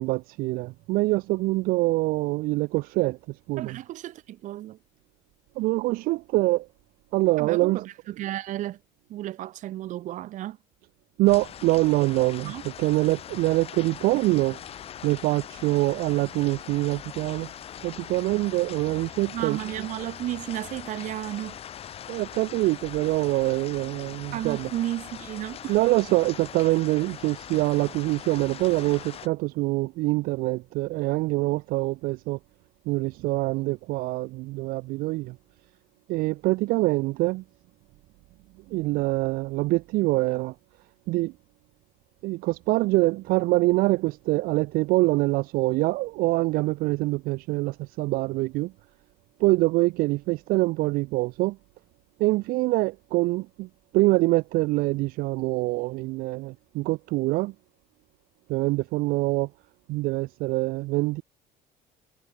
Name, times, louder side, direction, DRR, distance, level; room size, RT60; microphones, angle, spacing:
voice 1, 0.0-3.2 3.5-3.8 5.6-6.7 7.1-7.8 11.2-14.6 15.0-17.5 17.8-19.6 22.1-24.7 25.7-32.4 32.9-35.3 36.1-37.4 38.7-40.5 41.1-41.3 42.2-48.7 49.4-51.6 52.2-53.7 53.9-57.5 58.5-59.5 59.9-61.2, right 20 dB, 75° right, 1.0 m, -25 dB
voice 2, 3.6-4.8 7.4-8.8 9.1-10.6 12.4-12.6 19.3-21.6 24.3-25.8, right 14 dB, 55° right, 1.8 m, -33 dB
sound 1, 11.3-29.3, left 10 dB, 40° left, 1.4 m, -41 dB
cardioid pair, 135°, 15 cm